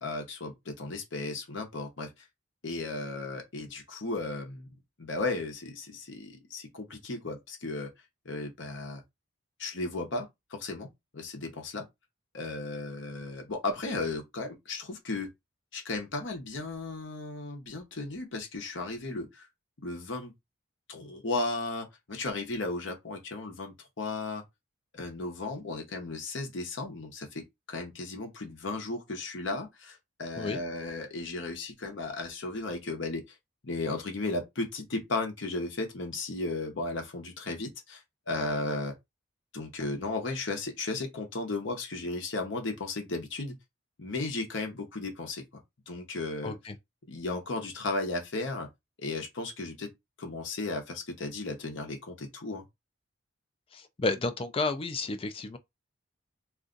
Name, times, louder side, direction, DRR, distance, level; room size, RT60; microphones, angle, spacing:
voice 1, 0.0-2.1 2.6-4.7 5.0-7.9 8.2-9.0 9.6-11.9 12.3-15.3 15.7-19.5 19.8-20.3 20.9-24.4 24.9-33.4 33.6-38.9 39.5-43.5 44.0-46.6 47.1-48.7 49.0-49.9 50.2-52.6, left 2 dB, 60° left, 0.9 m, -35 dB
voice 2, 46.4-46.7 53.7-55.6, left 3 dB, 25° left, 0.3 m, -31 dB
2.5 x 2.3 x 3.7 m
head